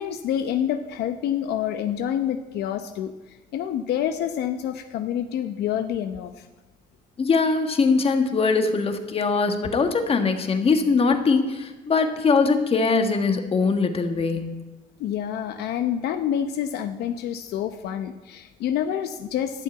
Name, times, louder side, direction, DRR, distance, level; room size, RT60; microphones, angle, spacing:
voice 1, 0.0-6.5 15.0-19.6, left 10 dB, 75° left, 8 dB, 0.8 m, -27 dB
voice 2, 7.2-14.6, left 4 dB, 35° left, 7 dB, 1.5 m, -22 dB
12.0 x 7.5 x 9.1 m, 1.1 s
cardioid pair, 110°, 17 cm